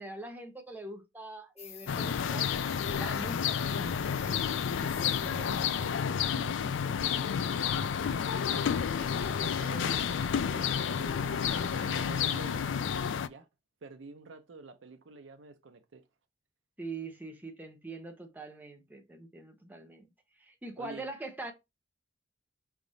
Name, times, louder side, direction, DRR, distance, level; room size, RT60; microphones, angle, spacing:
voice 1, 0.0-2.5 3.0-4.1 16.8-20.1 20.4-21.5, right 2 dB, 10° right, 0.8 m, -43 dB
sound 1, 1.6-6.1 6.4-6.7, left 6 dB, 35° left, 1.1 m, -48 dB
sound 2, 1.9-13.3, left 7 dB, 70° left, 0.4 m, -30 dB
voice 2, 4.8-10.0 10.5-12.7 13.3-13.5 13.8-16.0 20.8-21.0, right 3 dB, 80° right, 0.6 m, -49 dB
sound 3, 7.4-12.8, right 4 dB, 30° right, 0.4 m, -51 dB
4.9 x 3.5 x 2.6 m
head